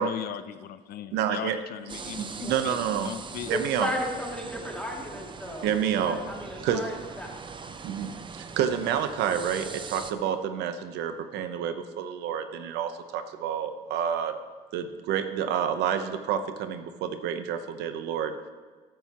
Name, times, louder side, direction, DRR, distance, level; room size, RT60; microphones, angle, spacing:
voice 1, 0.0-3.5, left 11 dB, 65° left, 12 dB, 0.6 m, -38 dB
voice 2, 1.1-1.6 2.2-3.1 3.5-3.9 5.6-6.2 6.6-6.9 7.8-8.1 8.4-14.3 14.7-18.3, right 8 dB, 85° right, 9 dB, 0.9 m, -29 dB
sound 1, 1.9-10.1, right 5 dB, 30° right, 0.7 m, -41 dB
voice 3, 3.5-7.3, left 1 dB, 5° left, -2 dB, 2.4 m, -35 dB
14.0 x 11.5 x 3.0 m, 1.4 s
cardioid pair, 110°, 17 cm